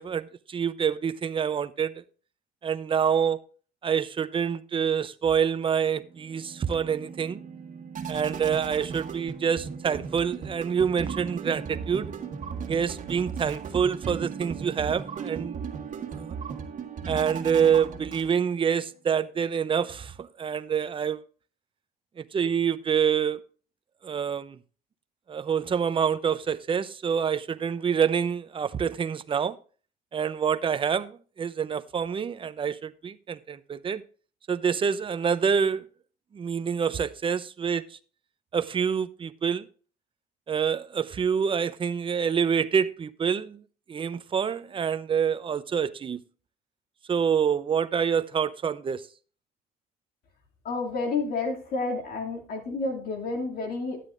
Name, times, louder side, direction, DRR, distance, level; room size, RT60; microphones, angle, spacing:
voice 1, 0.0-2.0 2.6-3.4 3.8-7.4 8.1-12.1 12.7-15.6 16.1-16.4 17.1-21.2 22.2-23.4 24.0-24.6 25.3-29.6 30.1-34.0 34.5-35.8 36.3-38.0 38.5-39.7 40.5-43.6 43.9-46.2 47.1-49.1, right 7 dB, 30° right, 0.6 m, -27 dB
sound 1, 6.0-18.7, right 6 dB, 50° right, 1.7 m, -37 dB
voice 2, 50.6-54.0, left 3 dB, 65° left, 2.6 m, -30 dB
12.5 x 10.0 x 2.5 m
cardioid pair, 110°, 17 cm